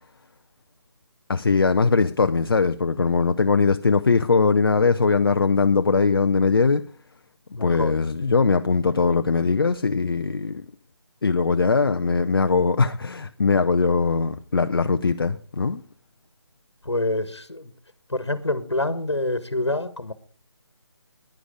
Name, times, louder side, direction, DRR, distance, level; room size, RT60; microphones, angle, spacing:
voice 1, 1.3-6.8 7.6-10.6 11.2-15.8, left 4 dB, 55° left, 0.7 m, -21 dB
voice 2, 7.6-7.9 16.8-17.7 18.1-20.1, left 2 dB, 80° left, 1.4 m, -26 dB
11.0 x 10.5 x 5.1 m
figure-of-eight pair, 155°, 14 cm